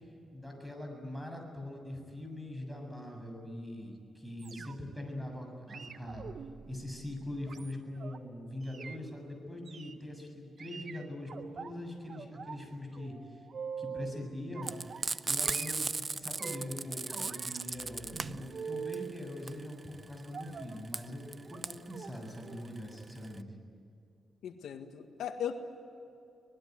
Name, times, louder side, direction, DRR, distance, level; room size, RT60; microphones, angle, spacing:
voice 1, 0.3-6.3 6.7-13.4 13.8-14.7 15.3-23.4, left 1 dB, 5° right, 3 dB, 7.3 m, -42 dB
sound 1, 4.4-5.0 5.7-8.2 8.6-9.0 9.7-10.0 10.6-11.7 12.1-12.6 12.9-14.2 14.5-15.2 15.4-16.8 17.1-19.2 20.3-20.8 21.5-21.6 21.9-22.1 22.4-22.6 22.9-23.0, right 6 dB, 55° right, 1.3 m, -44 dB
Frying (food), 14.6-23.4, right 4 dB, 35° right, 0.7 m, -36 dB
voice 2, 24.4-25.5, left 9 dB, 90° left, 5 dB, 1.8 m, -37 dB
25.0 x 20.0 x 9.4 m, 2.6 s
cardioid pair, 90°, 0 cm